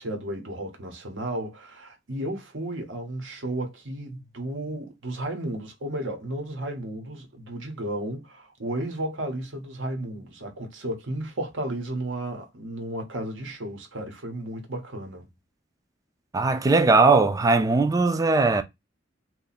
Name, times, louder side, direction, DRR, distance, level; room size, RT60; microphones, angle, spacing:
voice 1, 0.0-15.3, right 1 dB, 85° right, 1.2 m, -33 dB
voice 2, 16.3-18.6, right 3 dB, 20° right, 0.4 m, -19 dB
2.9 x 2.5 x 4.0 m
head